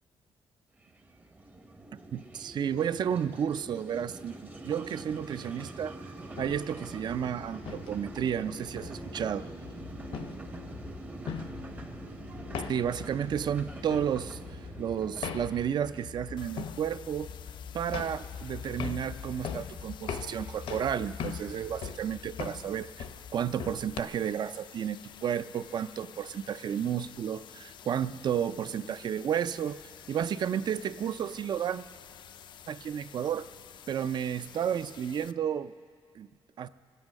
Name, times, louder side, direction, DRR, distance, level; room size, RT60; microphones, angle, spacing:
sound 1, 0.8-17.4, right 2 dB, 20° right, 0.7 m, -45 dB
voice 1, 1.9-4.4 4.6-6.0 6.4-9.5 12.7-17.3 17.7-23.1 23.3-29.8 30.1-31.8 32.7-33.5 33.9-35.7 36.2-36.3 36.6-36.7, right 9 dB, 50° right, 14 dB, 0.4 m, -32 dB
sound 2, 6.2-24.0, left 7 dB, 75° left, 0.7 m, -41 dB
sound 3, 16.4-35.3, left 9 dB, 55° left, 0.3 m, -51 dB
25.0 x 8.5 x 6.4 m, 2.1 s
wide cardioid pair, 155°, 9 cm